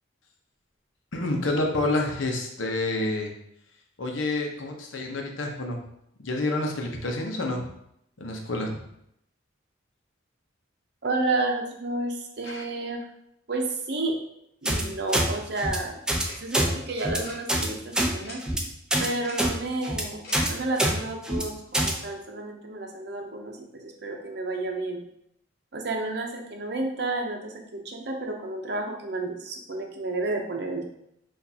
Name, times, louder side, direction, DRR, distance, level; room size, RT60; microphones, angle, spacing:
voice 1, 1.1-3.3 4.0-5.8 6.2-7.7 8.2-8.8 12.4-12.6, left 2 dB, 85° left, 2 dB, 0.8 m, -28 dB
voice 2, 11.0-13.1 13.5-14.2 14.6-16.0 16.3-18.4 19.0-25.0 25.7-30.8, right 2 dB, 60° right, 2 dB, 0.7 m, -31 dB
sound 1, 14.6-14.8 15.1-15.3 15.6-15.8 16.1-16.2 16.5-16.7 17.0-17.2 17.5-17.7 17.9-18.1 18.4-18.6 18.9-19.1 19.4-19.5 19.8-20.0 20.3-20.5 20.8-20.9 21.2-21.4 21.7-21.9, right 1 dB, 5° right, 0.3 m, -24 dB
Tick-tock, 16.2-16.4 17.2-17.4 18.2-18.4 19.2-19.4 20.2-20.4, left 2 dB, 50° left, 1.1 m, -42 dB
6.0 x 2.5 x 2.8 m, 0.76 s
head